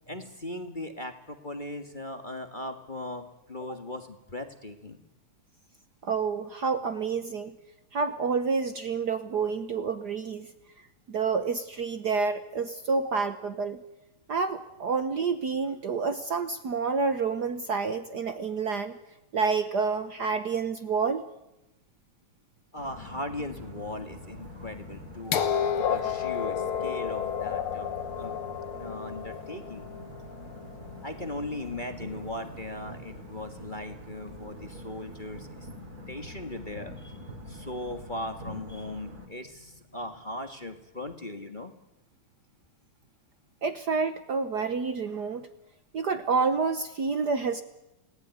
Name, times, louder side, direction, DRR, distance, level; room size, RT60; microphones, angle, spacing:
voice 1, 0.1-5.0 22.7-27.9 28.2-28.4 28.8-29.9 31.0-35.7 36.1-37.2 37.5-41.7, left 1 dB, 25° left, 6 dB, 1.3 m, -38 dB
voice 2, 6.0-7.5 7.9-10.5 11.1-13.8 14.3-19.0 19.3-21.2 43.6-45.4 45.9-47.6, right 5 dB, 75° right, 10 dB, 0.9 m, -28 dB
sound 1, 22.8-39.3, equal, 30° right, 3.7 m, -44 dB
sound 2, 25.3-31.2 32.3-32.4, left 8 dB, 55° left, 1.8 m, -31 dB
29.0 x 19.0 x 9.5 m, 0.97 s
omnidirectional pair, 3.3 m